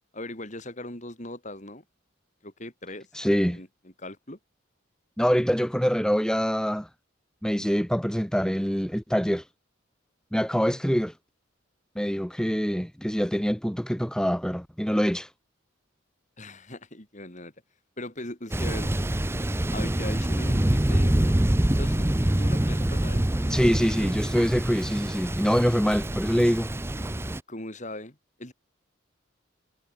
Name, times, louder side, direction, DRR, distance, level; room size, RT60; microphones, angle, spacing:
voice 1, 0.1-1.8 2.4-4.4 16.4-17.5 18.0-18.9 19.7-21.4 21.8-24.1 27.5-28.5, left 1 dB, 35° left, 6.0 m, -40 dB
voice 2, 3.1-3.6 5.2-6.9 7.4-9.4 10.3-11.1 12.0-15.3 23.5-26.7, equal, 5° left, 2.4 m, -25 dB
Thunder, 18.5-27.4, right 1 dB, 10° right, 0.6 m, -25 dB
head